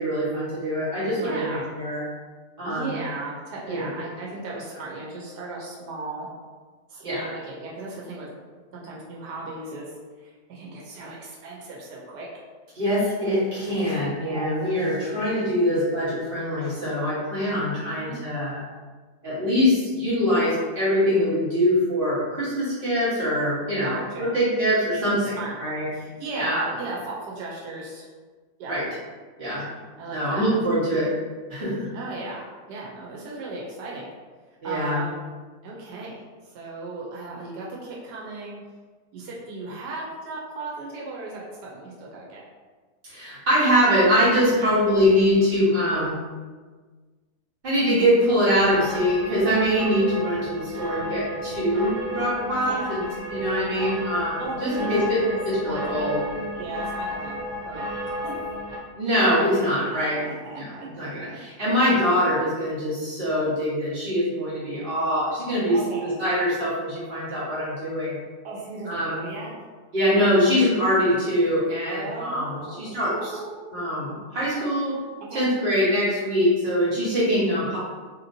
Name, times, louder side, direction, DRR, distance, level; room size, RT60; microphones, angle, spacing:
voice 1, 0.0-2.0 2.6-2.9 3.7-3.9 7.0-7.3 12.7-18.6 19.2-25.9 26.4-26.6 28.7-28.8 29.4-29.6 30.1-31.1 31.5-31.9 34.6-35.0 43.0-46.2 47.6-53.0 53.3-56.2 59.0-60.2 60.6-60.7 61.0-68.2 68.9-69.2 69.9-73.3 73.7-75.0 75.3-77.8, equal, 35° right, -9 dB, 1.3 m, -23 dB
voice 2, 1.2-1.7 2.6-6.3 6.9-8.3 8.7-12.3 14.3-14.5 17.5-17.6 17.9-18.2 23.8-24.3 25.2-25.5 25.9-28.1 28.6-28.7 30.0-30.4 31.9-34.1 34.6-35.3 35.6-36.1 36.4-38.6 39.1-42.4 44.6-44.7 52.6-52.8 53.3-53.9 54.4-56.2 56.5-57.8 58.2-58.3 59.5-61.3 65.6-66.1 68.4-69.5 71.8-73.7 75.3-75.4, right 3 dB, 85° right, -4 dB, 1.2 m, -36 dB
sound 1, 48.5-58.8, equal, 70° right, 1.0 m, -33 dB
2.9 x 2.8 x 2.6 m, 1.4 s
omnidirectional pair, 1.7 m